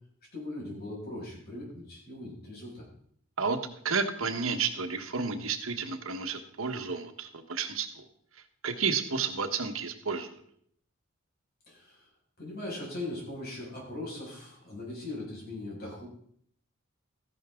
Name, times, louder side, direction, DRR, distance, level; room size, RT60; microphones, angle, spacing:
voice 1, 0.3-2.8 11.7-12.1 12.4-16.1, left 2 dB, 45° left, -3 dB, 6.2 m, -40 dB
voice 2, 3.8-8.0 8.6-10.4, right 5 dB, 75° right, 7 dB, 1.4 m, -31 dB
14.5 x 11.0 x 3.8 m, 0.65 s
head